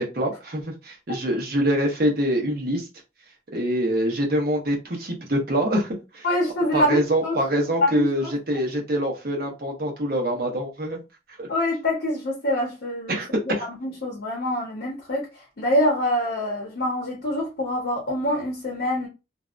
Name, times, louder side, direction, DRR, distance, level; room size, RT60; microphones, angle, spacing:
voice 1, 0.0-2.9 3.5-6.3 6.7-11.0 11.4-11.5 13.1-13.7, equal, 50° right, 0.8 m, -25 dB
voice 2, 6.2-7.3 7.8-8.3 11.5-13.2 13.8-19.1, left 1 dB, 65° left, 0.8 m, -25 dB
2.6 x 2.1 x 2.4 m
head